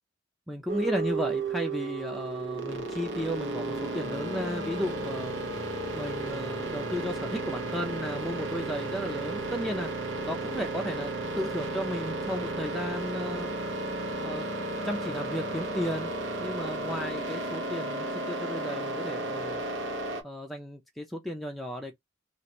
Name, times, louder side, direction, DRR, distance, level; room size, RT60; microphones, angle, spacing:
voice 1, 0.5-5.3 5.9-9.9 10.3-13.6 14.2-14.5 14.8-16.1 16.4-19.6 20.2-21.9, equal, ahead, 0.4 m, -34 dB
sound 1, 0.7-20.2, right 2 dB, 85° right, 0.8 m, -33 dB
3.1 x 2.4 x 2.8 m
head